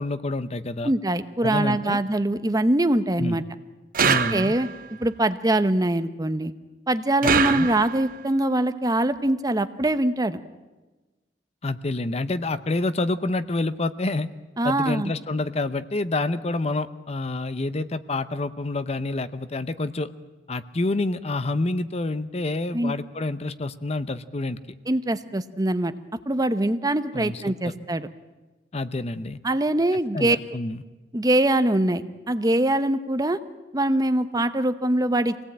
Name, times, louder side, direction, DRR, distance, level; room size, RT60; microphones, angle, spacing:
voice 1, 0.0-0.9 1.4-2.0 3.2-3.4 4.0-4.5 7.2-7.7 11.6-14.3 14.6-20.1 20.5-24.6 27.1-27.6 28.7-29.4 30.1-30.8, left 2 dB, 35° left, 13 dB, 0.8 m, -28 dB
voice 2, 0.8-3.4 4.3-4.7 5.0-6.5 6.9-10.4 14.6-15.1 22.7-22.9 24.9-25.9 26.3-28.1 29.4-30.4 31.1-33.4 33.7-35.4, right 1 dB, 20° right, 11 dB, 0.8 m, -23 dB
sound 1, 3.9-4.9 7.2-8.2, right 6 dB, 55° right, 0.9 m, -24 dB
25.5 x 18.0 x 8.7 m, 1.2 s
head